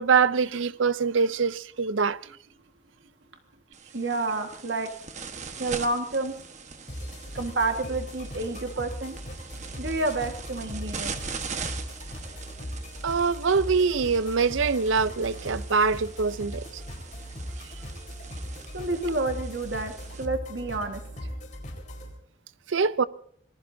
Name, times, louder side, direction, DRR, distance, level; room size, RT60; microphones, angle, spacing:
voice 1, 0.0-2.2 13.0-16.6 22.7-23.1, right 5 dB, 80° right, 0.6 m, -24 dB
sound 1, 3.7-20.2, right 5 dB, 35° right, 1.3 m, -41 dB
voice 2, 3.9-4.9 5.6-6.3 7.3-9.2 9.8-11.1 18.7-19.9 20.2-21.0, right 2 dB, 60° right, 1.7 m, -29 dB
sound 2, 6.9-22.1, equal, 40° left, 4.4 m, -39 dB
26.5 x 19.5 x 2.7 m
head